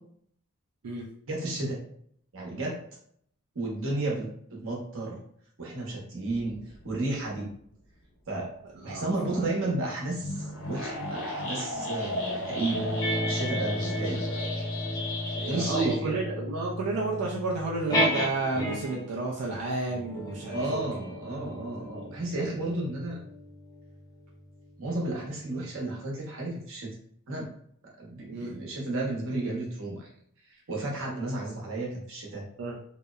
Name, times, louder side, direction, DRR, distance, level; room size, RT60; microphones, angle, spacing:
voice 1, 1.3-1.8 2.3-2.8 3.5-5.2 5.6-6.6 6.8-7.5 8.3-8.5 8.8-12.9 13.2-14.2 15.5-16.2 20.5-23.2 24.8-26.9 27.3-27.5 28.0-30.1 30.7-32.4, right 2 dB, 65° right, -2 dB, 0.8 m, -32 dB
sound 1, 6.3-7.2 10.1-15.9, left 1 dB, 85° left, 0.6 m, -35 dB
voice 2, 8.8-9.5 15.3-20.8 21.5-21.6 28.3-28.5 32.6-32.8, right 3 dB, 90° right, -3 dB, 0.4 m, -31 dB
sound 2, 12.7-19.1 19.9-24.8, equal, 15° left, 0.4 m, -33 dB
2.7 x 2.0 x 2.3 m, 0.64 s
head